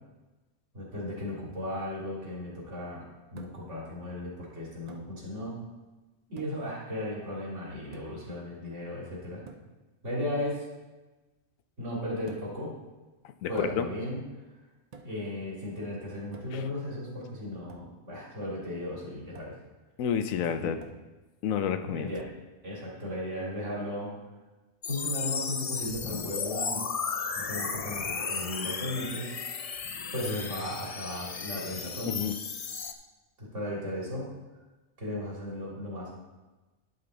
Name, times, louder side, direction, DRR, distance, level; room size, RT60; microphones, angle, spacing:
voice 1, 0.7-3.0 3.3-5.6 6.3-9.4 10.0-10.6 11.8-12.7 13.5-14.2 15.0-19.5 20.6-20.7 21.8-22.2 22.6-24.1 24.9-26.9 27.3-29.3 30.1-32.2 33.4-34.2 35.0-36.1, left 1 dB, 65° right, -5 dB, 3.1 m, -36 dB
sound 1, 3.4-3.8 4.9-5.1 6.4-6.7 7.9-8.3 9.5-9.7 12.3-12.7 13.6-14.0 14.9-15.3 16.3-16.7 17.7-17.9 19.3-19.6 20.8-21.1 22.2-22.4, right 4 dB, 40° right, 0.6 m, -49 dB
voice 2, 13.2-13.9 16.5-16.7 20.0-20.8 21.4-22.1 32.1-32.3, left 8 dB, 85° left, 9 dB, 1.0 m, -30 dB
sound 2, 24.8-32.9, left 5 dB, 65° left, 0.3 m, -34 dB
11.0 x 5.6 x 3.9 m, 1.2 s
omnidirectional pair, 1.4 m